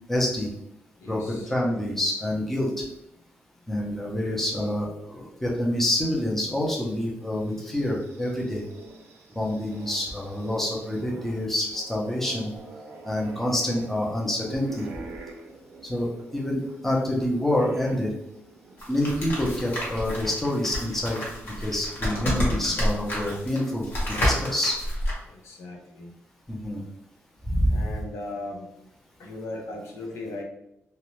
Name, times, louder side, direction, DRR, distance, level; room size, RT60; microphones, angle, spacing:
voice 1, 0.1-0.5 1.1-2.8 3.7-8.6 9.3-12.5 13.0-14.9 15.8-18.1 18.9-24.8 26.5-26.8 27.5-27.8, left 1 dB, 5° left, -3 dB, 0.5 m, -27 dB
voice 2, 1.0-1.5 5.1-5.3 25.2-26.2 27.7-28.7 29.2-30.4, left 2 dB, 90° left, 0 dB, 0.6 m, -38 dB
sound 1, 7.3-19.6 20.0-20.1 21.2-22.5, right 3 dB, 65° right, 0.4 m, -46 dB
sound 2, 18.8-25.1, equal, 50° left, 1.1 m, -29 dB
2.6 x 2.1 x 3.0 m, 0.82 s
wide cardioid pair, 150°, 5 cm